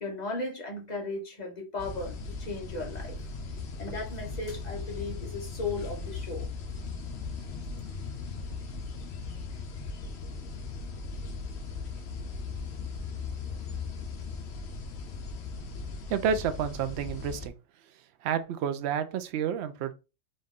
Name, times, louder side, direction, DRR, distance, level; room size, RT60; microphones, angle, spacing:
voice 1, 0.0-3.2 3.8-6.5, left 3 dB, 35° left, 1.1 m, -36 dB
sound 1, 1.8-17.5, left 4 dB, 60° left, 1.0 m, -38 dB
voice 2, 16.1-17.5 18.2-19.9, right 7 dB, 65° right, 0.8 m, -30 dB
4.1 x 2.5 x 3.6 m
omnidirectional pair, 1.3 m